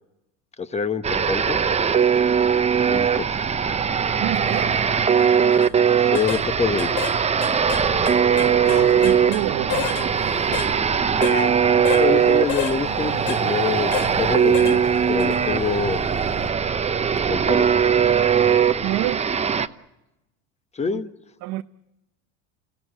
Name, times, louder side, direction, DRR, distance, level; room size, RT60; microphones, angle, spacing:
voice 1, 0.6-1.6 2.9-3.3 6.0-6.9 11.7-14.8 15.1-16.0 17.3-17.7 20.7-21.1, left 5 dB, 20° left, 1.3 m, -26 dB
sound 1, 1.0-19.7, right 7 dB, 20° right, 0.9 m, -20 dB
voice 2, 4.2-4.9 8.3-10.7 16.2-16.3 18.8-19.3 20.8-21.0 21.4-21.6, right 16 dB, 55° right, 0.8 m, -29 dB
sound 2, 4.4-16.5, left 3 dB, 70° left, 3.9 m, -38 dB
sound 3, 5.5-5.7 6.1-6.4 6.8-7.2 7.4-9.4 9.7-10.1 10.5-10.7 11.2-11.4 11.9-12.1 12.5-12.8 13.3-13.4 13.9-14.1 14.5-14.8 15.2-15.4, left 10 dB, 85° left, 1.1 m, -30 dB
30.0 x 17.0 x 9.1 m
supercardioid pair, 95°, 36 cm